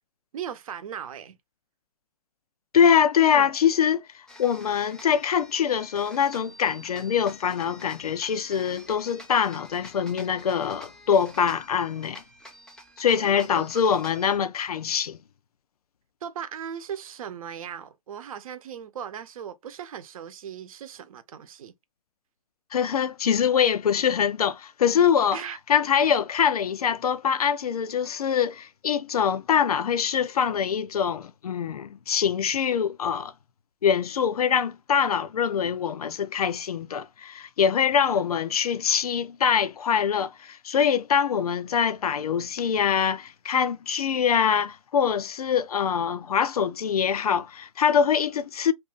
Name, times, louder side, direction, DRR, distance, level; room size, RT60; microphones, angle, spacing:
voice 1, 0.3-1.4 3.2-3.5 13.1-13.7 16.2-21.7 25.3-25.6, right 8 dB, 70° right, 0.7 m, -38 dB
voice 2, 2.7-12.2 13.0-15.2 22.7-25.4 25.7-33.3 33.8-48.7, left 7 dB, 90° left, 0.5 m, -24 dB
sound 1, 4.3-14.4, equal, 5° left, 0.6 m, -48 dB
2.6 x 2.4 x 3.8 m
hypercardioid pair, 135°, 19 cm